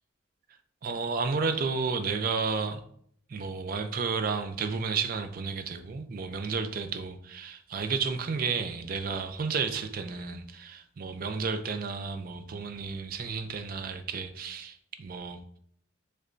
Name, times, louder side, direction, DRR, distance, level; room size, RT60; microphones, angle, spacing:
voice 1, 0.8-2.8 3.3-15.4, right 5 dB, 45° right, 0.4 m, -32 dB
6.4 x 2.2 x 2.5 m
head